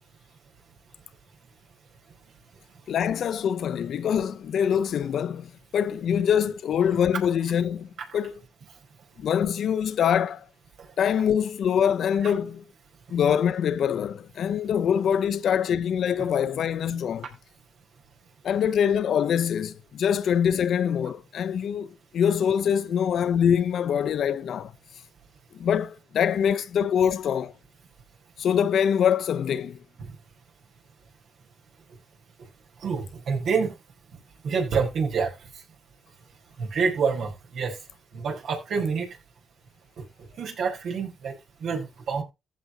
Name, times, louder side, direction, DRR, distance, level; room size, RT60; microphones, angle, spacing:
voice 1, 2.9-8.3 9.2-10.4 11.0-12.6 13.1-17.3 18.4-24.7 25.5-27.5 28.4-29.8, left 8 dB, 65° left, 0.7 m, -24 dB
voice 2, 32.8-33.7 34.4-35.3 36.6-37.8 38.1-39.1 40.4-41.3 41.6-42.2, right 5 dB, 70° right, 4.6 m, -27 dB
15.0 x 5.2 x 4.2 m
cardioid pair, 90°, 0 cm